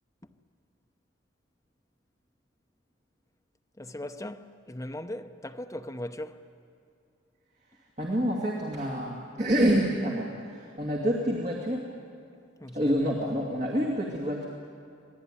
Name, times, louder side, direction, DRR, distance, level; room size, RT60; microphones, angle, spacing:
voice 1, 3.8-6.4 12.6-12.9, left 1 dB, 15° left, 0.8 m, -38 dB
voice 2, 8.0-11.9 12.7-14.5, equal, 35° right, 2.3 m, -27 dB
26.0 x 19.0 x 9.8 m
head